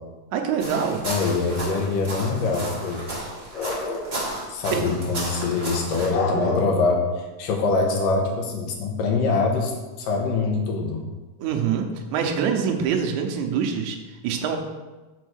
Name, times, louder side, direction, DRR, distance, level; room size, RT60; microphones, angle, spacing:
voice 1, 0.3-1.0 4.7-4.9 11.4-14.0 14.2-14.6, right 7 dB, 75° right, 3 dB, 1.9 m, -25 dB
sound 1, 0.6-6.1, right 1 dB, 35° right, 0.7 m, -33 dB
voice 2, 1.0-3.0 3.5-9.7 10.0-11.1, left 3 dB, 85° left, 1 dB, 2.7 m, -24 dB
6.1 x 4.5 x 6.3 m, 1.2 s
omnidirectional pair, 3.8 m